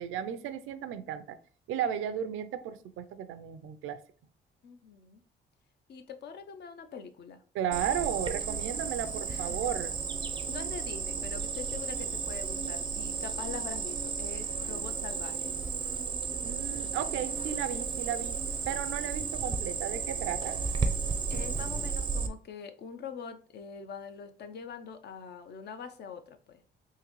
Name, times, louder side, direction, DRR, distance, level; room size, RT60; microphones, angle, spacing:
voice 1, 0.0-1.4 1.7-4.0 7.5-9.9 16.4-18.4 18.7-20.6, right 9 dB, 85° right, 0.4 m, -34 dB
voice 2, 4.6-5.2 5.9-7.4 9.3-9.6 10.5-15.5 21.3-26.6, left 6 dB, 55° left, 0.6 m, -43 dB
Cricket, 7.7-22.3, right 5 dB, 25° right, 0.5 m, -33 dB
3.7 x 2.6 x 3.0 m
cardioid pair, 90°, 20 cm